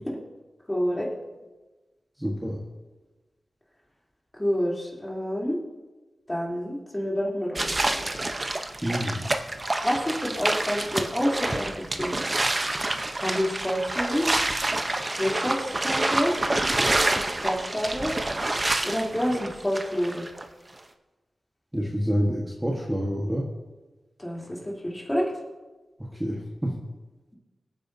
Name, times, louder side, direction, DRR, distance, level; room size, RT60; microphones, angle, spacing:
voice 1, 0.7-1.1 4.4-5.6 6.3-8.1 9.8-12.2 13.2-14.3 15.2-16.4 17.1-18.1 18.8-20.2 24.2-25.3, equal, 15° left, -4 dB, 3.2 m, -28 dB
voice 2, 2.2-2.6 8.8-9.3 21.7-23.5 26.0-26.7, equal, 10° right, -2 dB, 1.3 m, -28 dB
sound 1, 7.6-20.5, right 2 dB, 30° right, 0.8 m, -27 dB
23.0 x 9.2 x 2.7 m, 1.2 s
wide cardioid pair, 90°, 0 cm